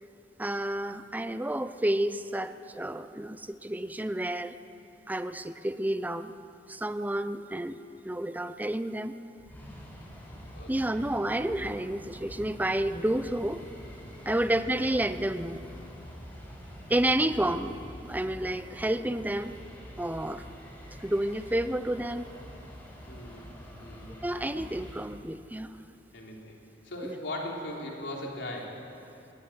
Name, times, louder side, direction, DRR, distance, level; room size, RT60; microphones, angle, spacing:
voice 1, 0.4-4.5 5.1-6.3 6.7-7.8 8.0-9.1 10.7-13.6 14.3-15.6 16.9-17.8 18.0-19.6 20.0-20.4 21.0-22.3 24.2-25.7 27.0-27.2, right 1 dB, 10° right, 11 dB, 0.6 m, -30 dB
sound 1, 9.4-25.0, equal, 10° left, 6.7 m, -46 dB
voice 2, 10.5-11.0 14.2-14.4 17.0-17.4 23.1-24.6 26.1-26.6 26.8-28.8, left 1 dB, 70° left, -1 dB, 3.8 m, -40 dB
21.0 x 15.0 x 9.5 m, 2.9 s
head